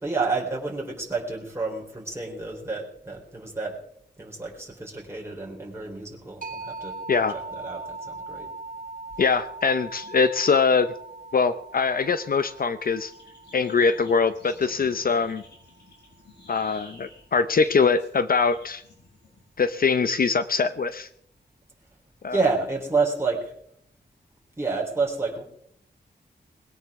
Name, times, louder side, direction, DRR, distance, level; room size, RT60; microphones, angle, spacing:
voice 1, 0.0-3.8 4.2-7.0 7.3-8.5 22.3-23.5 24.6-25.4, right 4 dB, 15° right, -3 dB, 3.9 m, -29 dB
sound 1, 6.4-15.8, right 3 dB, 50° right, 2.3 m, -41 dB
voice 2, 9.2-10.9 11.3-13.1 13.5-15.4 16.5-18.8 19.6-21.1 22.2-22.4, left 5 dB, 55° left, 11 dB, 0.7 m, -23 dB
sound 2, 13.1-20.0, left 2 dB, 85° left, 6.4 m, -52 dB
20.5 x 17.0 x 3.7 m, 0.70 s
wide cardioid pair, 115°, 18 cm